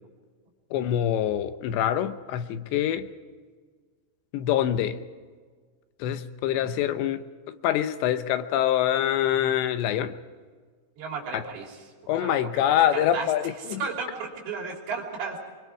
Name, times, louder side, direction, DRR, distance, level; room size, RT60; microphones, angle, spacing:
voice 1, 0.7-3.1 4.3-5.0 6.0-10.2 11.3-11.4 12.1-13.8, left 11 dB, 85° left, 10 dB, 3.2 m, -25 dB
voice 2, 11.0-11.8 12.2-13.3 13.6-15.4, right 5 dB, 80° right, 0 dB, 5.5 m, -34 dB
25.0 x 23.5 x 4.8 m, 1.5 s
omnidirectional pair, 5.0 m